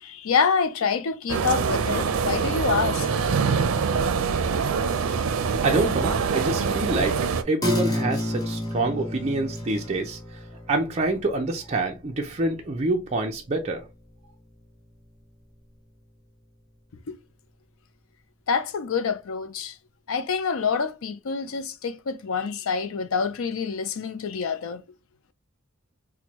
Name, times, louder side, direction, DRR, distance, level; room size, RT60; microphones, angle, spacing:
voice 1, 0.0-3.1 17.1-17.2 18.5-19.7 20.1-24.8, left 5 dB, 80° left, 0.5 m, -26 dB
sound 1, 1.3-7.4, right 5 dB, 85° right, 0.5 m, -24 dB
voice 2, 5.6-7.2 7.4-10.2 10.7-13.8, right 2 dB, 30° right, 0.5 m, -26 dB
sound 2, 7.6-14.6 15.0-15.1, left 1 dB, 20° left, 0.9 m, -32 dB
4.3 x 2.1 x 2.9 m
head